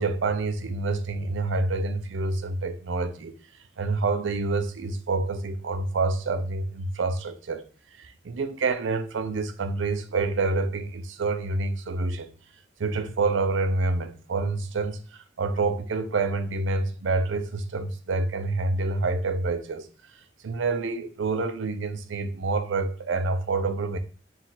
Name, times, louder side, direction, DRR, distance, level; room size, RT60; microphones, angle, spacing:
voice 1, 0.0-3.3 3.8-7.6 8.0-12.3 12.8-19.9 20.4-24.0, right 3 dB, 80° right, 0.5 m, -27 dB
4.4 x 2.4 x 3.8 m
head